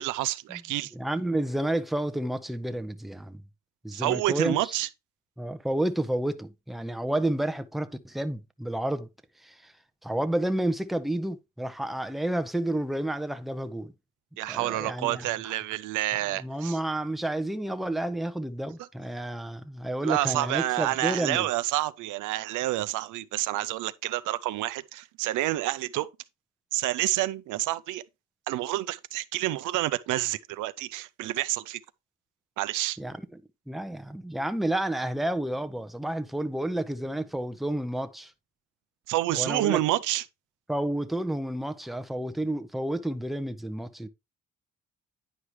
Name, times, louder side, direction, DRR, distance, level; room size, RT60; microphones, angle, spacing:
voice 1, 0.0-0.9 3.9-4.9 14.4-16.8 20.0-26.1 26.7-28.0 28.5-31.8 32.6-33.0 39.1-40.2, right 16 dB, 90° right, 0.5 m, -28 dB
voice 2, 0.9-3.4 3.8-4.8 5.4-9.1 9.4-9.7 10.0-13.9 14.5-15.5 16.3-21.5 33.0-33.3 33.7-38.3 39.3-39.8 40.7-44.1, right 1 dB, ahead, 0.6 m, -30 dB
9.9 x 4.8 x 3.0 m
cardioid pair, 90°, 30 cm